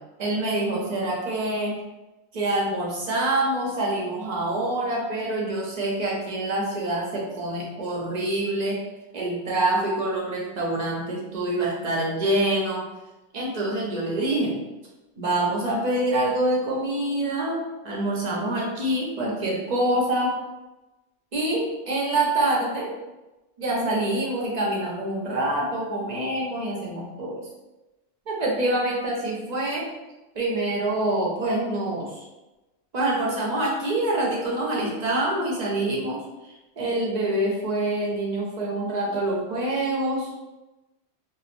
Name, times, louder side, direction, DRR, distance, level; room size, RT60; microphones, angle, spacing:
voice 1, 0.2-1.8 2.3-8.8 9.1-12.8 13.3-14.6 15.2-20.4 21.3-22.9 23.6-27.5 28.3-29.9 30.3-32.2 32.9-40.3, right 1 dB, 45° right, -3 dB, 0.6 m, -26 dB
2.8 x 2.0 x 2.5 m, 1.1 s
omnidirectional pair, 1.2 m